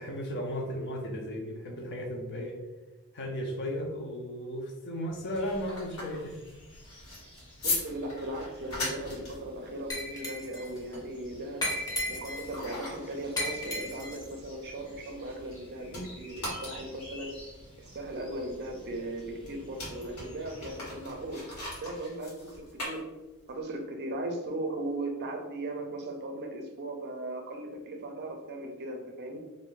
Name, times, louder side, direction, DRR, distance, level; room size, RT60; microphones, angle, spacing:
voice 1, 0.0-2.6 3.1-6.4, equal, 50° left, 2 dB, 0.6 m, -35 dB
sound 1, 5.1-15.6 15.9-23.6, left 2 dB, 90° left, 1.4 m, -40 dB
sound 2, 5.3-21.3, equal, 75° left, 1.5 m, -52 dB
voice 2, 7.6-17.4 17.8-21.5 21.8-23.1 23.5-29.4, right 1 dB, 50° right, 3 dB, 0.5 m, -38 dB
Glass, 9.9-10.7 11.6-12.5 13.4-14.2, left 1 dB, 15° left, 0.7 m, -34 dB
2.6 x 2.5 x 3.6 m, 1.1 s
head